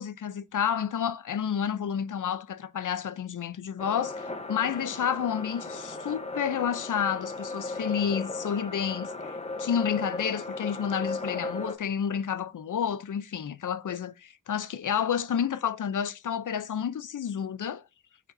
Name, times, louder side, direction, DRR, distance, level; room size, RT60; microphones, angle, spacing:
voice 1, 0.0-17.8, left 8 dB, 85° left, 0.6 m, -30 dB
sound 1, 3.8-11.7, left 2 dB, 20° left, 1.0 m, -36 dB
13.0 x 4.6 x 2.7 m
wide cardioid pair, 110°, 30 cm